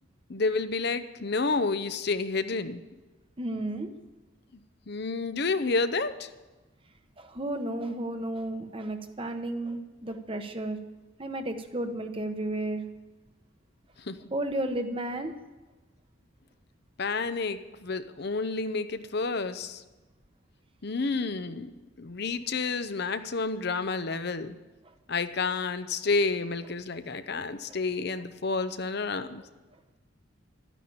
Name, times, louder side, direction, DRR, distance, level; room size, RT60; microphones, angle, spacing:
voice 1, 0.3-2.8 4.9-6.3 14.1-14.2 17.0-19.8 20.8-21.7 22.0-24.5 25.1-29.4, left 3 dB, 55° left, 10 dB, 0.7 m, -30 dB
voice 2, 3.4-3.9 7.2-10.8 11.2-12.8 14.3-15.3 21.5-21.6 27.7-27.8, right 1 dB, 25° right, 7 dB, 1.0 m, -33 dB
12.5 x 10.0 x 8.7 m, 1.2 s
head